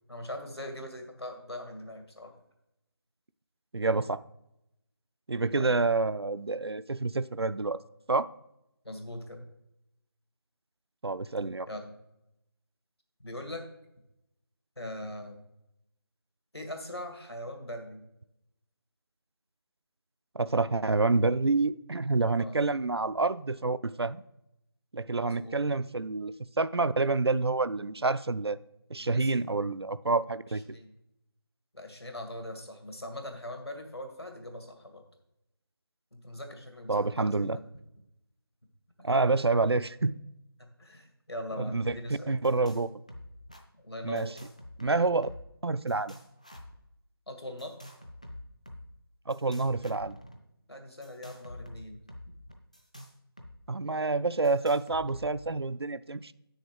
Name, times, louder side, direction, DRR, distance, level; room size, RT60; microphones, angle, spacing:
voice 1, 0.1-2.4 5.6-5.8 8.8-9.4 11.7-12.0 13.2-13.7 14.8-15.4 16.5-18.1 22.4-22.7 25.2-25.7 29.0-29.3 30.5-31.0 31.7-35.0 36.1-37.6 39.0-39.1 40.6-42.4 43.8-44.4 47.3-47.8 50.7-52.0, left 1 dB, 80° left, 4 dB, 2.1 m, -41 dB
voice 2, 3.7-4.2 5.3-7.8 8.1-8.3 11.0-11.7 20.3-24.2 24.9-28.6 28.9-30.8 36.9-37.6 39.0-40.1 41.6-41.9 42.3-42.9 44.0-44.3 44.8-45.3 45.6-46.2 49.3-50.2 53.7-56.3, right 3 dB, 80° right, 15 dB, 0.4 m, -28 dB
sound 1, 41.8-42.0 42.2-42.8 43.1-43.6 44.2-45.6 45.9-46.8 47.6-48.8 49.3-50.4 51.0-53.5 53.8-53.9 54.4-55.5, left 1 dB, 15° left, 0.4 m, -47 dB
7.9 x 6.5 x 4.7 m, 0.84 s
figure-of-eight pair, 165°, 13 cm